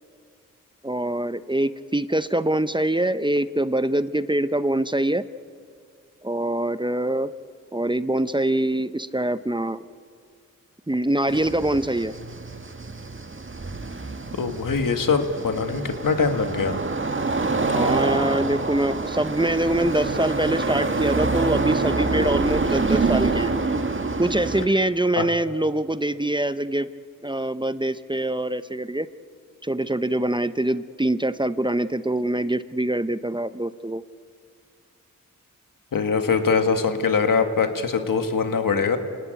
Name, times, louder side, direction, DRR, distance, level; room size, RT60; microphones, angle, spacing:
voice 1, 0.8-5.2 6.2-7.3 7.7-9.9 10.9-12.1 17.6-23.5 24.2-26.9 27.2-29.1 29.6-34.0, right 1 dB, 15° right, 13 dB, 0.8 m, -24 dB
sound 1, 11.3-24.7, right 3 dB, 40° right, 1.7 m, -26 dB
voice 2, 14.4-16.8 25.1-25.3 35.9-39.0, left 5 dB, 80° left, 7 dB, 1.9 m, -22 dB
27.0 x 18.0 x 9.3 m, 2.2 s
cardioid pair, 40°, 32 cm